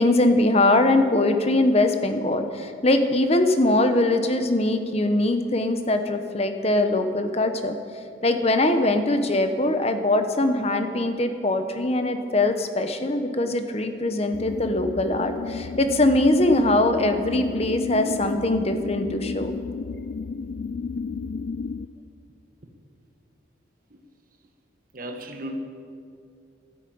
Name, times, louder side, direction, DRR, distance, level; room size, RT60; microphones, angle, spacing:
voice 1, 0.0-7.8 8.2-19.6, left 2 dB, 30° left, 8 dB, 0.9 m, -22 dB
sound 1, 14.3-21.9, left 4 dB, 50° left, 0.3 m, -32 dB
voice 2, 24.9-25.6, right 1 dB, 45° right, 4 dB, 1.5 m, -35 dB
12.5 x 10.5 x 8.6 m, 2.4 s
head